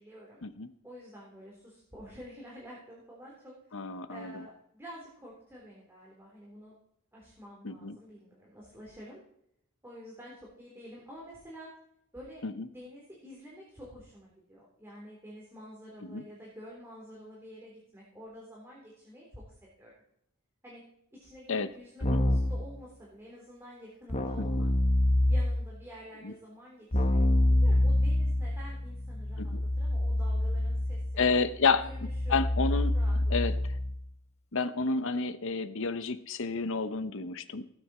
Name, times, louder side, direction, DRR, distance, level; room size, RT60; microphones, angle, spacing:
voice 1, 0.0-0.4 0.8-3.5 4.1-6.7 7.1-9.2 9.8-11.7 12.1-12.4 12.7-19.4 19.8-19.9 20.6-20.8 21.1-24.7 25.3-27.2 27.5-31.3 31.8-32.4 32.9-33.2, equal, 10° right, -5 dB, 3.8 m, -49 dB
voice 2, 3.7-4.4 7.6-8.0 12.4-12.7 16.0-16.2 21.5-21.7 22.1-22.2 24.4-24.5 26.2-26.3 29.4-29.6 31.2-31.8 32.3-33.5 34.5-37.7, left 4 dB, 65° left, 12 dB, 0.9 m, -30 dB
Keyboard (musical), 22.0-22.7 24.1-25.7 26.9-34.0, left 1 dB, 30° left, 1.0 m, -27 dB
18.5 x 9.2 x 4.4 m, 0.71 s
head